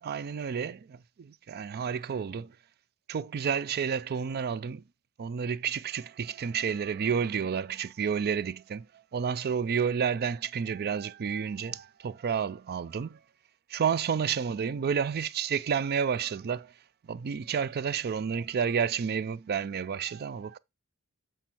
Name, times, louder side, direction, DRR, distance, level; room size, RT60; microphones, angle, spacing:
voice 1, 0.0-2.6 3.1-4.8 5.2-13.2 13.7-16.7 17.1-20.6, right 7 dB, 45° right, 0.4 m, -30 dB
7.7 x 4.4 x 4.3 m
head